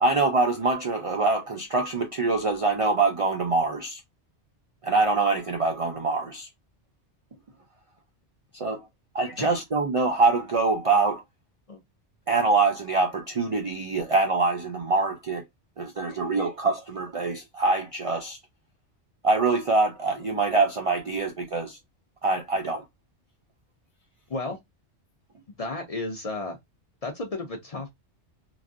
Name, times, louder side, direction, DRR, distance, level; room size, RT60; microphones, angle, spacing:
voice 1, 0.0-4.0 4.8-6.5 8.5-8.9 9.1-11.2 12.3-15.4 15.8-18.4 19.2-21.8 22.2-22.8, right 3 dB, 65° right, 0.3 m, -24 dB
voice 2, 25.6-26.6 27.0-27.9, left 2 dB, 45° left, 0.5 m, -33 dB
3.1 x 2.4 x 2.5 m
omnidirectional pair, 1.2 m